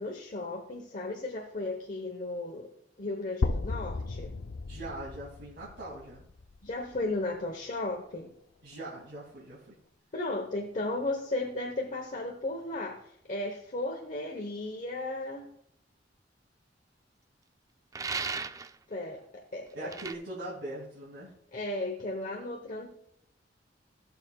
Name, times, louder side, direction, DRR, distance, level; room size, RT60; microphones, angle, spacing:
voice 1, 0.0-2.7 3.0-4.3 6.6-8.3 10.1-15.5 18.9-19.9 21.5-22.9, left 2 dB, 45° left, 1 dB, 1.0 m, -35 dB
sound 1, 3.4-7.4, left 3 dB, 85° left, 0.5 m, -35 dB
voice 2, 4.7-6.3 8.6-9.8 19.7-21.3, right 1 dB, 85° right, -5 dB, 2.4 m, -41 dB
sound 2, 17.9-18.7 19.9-20.1, right 5 dB, 20° right, 0.3 m, -35 dB
15.5 x 6.9 x 2.3 m, 0.71 s
head